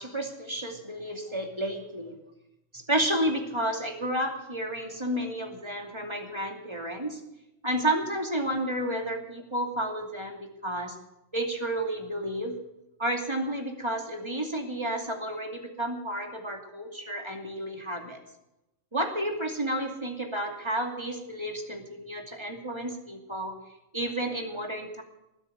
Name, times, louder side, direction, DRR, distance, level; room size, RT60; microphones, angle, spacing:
voice 1, 0.0-2.1 2.7-7.2 7.6-10.9 11.3-12.5 13.0-18.2 18.9-23.5 23.9-25.0, right 1 dB, 20° right, 3 dB, 2.7 m, -31 dB
19.5 x 8.4 x 8.0 m, 0.91 s
omnidirectional pair, 1.3 m